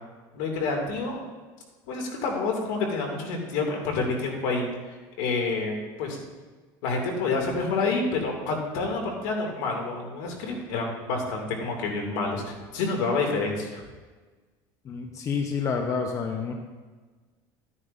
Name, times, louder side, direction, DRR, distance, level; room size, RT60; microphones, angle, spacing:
voice 1, 0.3-1.2 1.9-4.7 5.2-6.2 6.8-13.8, left 3 dB, 80° left, 1 dB, 2.4 m, -28 dB
voice 2, 14.8-16.5, left 5 dB, 35° left, 3 dB, 0.8 m, -28 dB
13.5 x 9.7 x 2.6 m, 1.3 s
cardioid pair, 145°, 10 cm